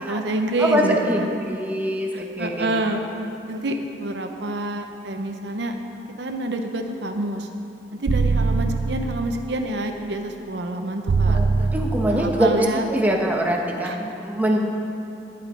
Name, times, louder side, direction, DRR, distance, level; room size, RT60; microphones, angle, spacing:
voice 1, 0.0-1.3 2.1-3.0 3.5-5.7 6.2-7.5 7.9-11.4 12.1-12.9 13.8-14.0, right 1 dB, 70° right, 4 dB, 0.8 m, -27 dB
voice 2, 0.6-2.7 11.3-12.5 12.9-14.7, equal, 10° right, 0 dB, 1.1 m, -23 dB
sound 1, 8.1-9.5 11.1-12.5, right 4 dB, 55° right, 0.3 m, -22 dB
11.5 x 10.0 x 5.2 m, 2.7 s
head